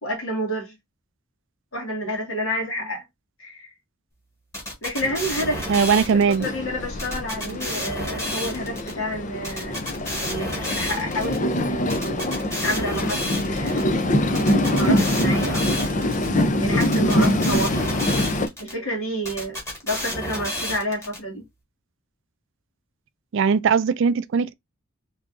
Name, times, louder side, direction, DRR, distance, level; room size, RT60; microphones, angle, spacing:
voice 1, 0.0-0.7 1.7-3.0 3.4-3.7 4.8-5.8 6.4-9.8 10.2-13.9 14.3-15.8 16.6-18.0 18.6-21.4, equal, 75° left, 2.2 m, -30 dB
sound 1, 4.5-6.5 7.0-8.9 9.4-11.4 11.9-13.8 14.3-16.3 16.8-18.7 19.2-21.2, equal, 15° left, 1.6 m, -31 dB
Train, 5.0-18.5, left 1 dB, 40° left, 0.5 m, -24 dB
voice 2, 5.7-6.5 23.3-24.5, right 6 dB, 60° right, 0.4 m, -19 dB
3.8 x 3.4 x 2.5 m
head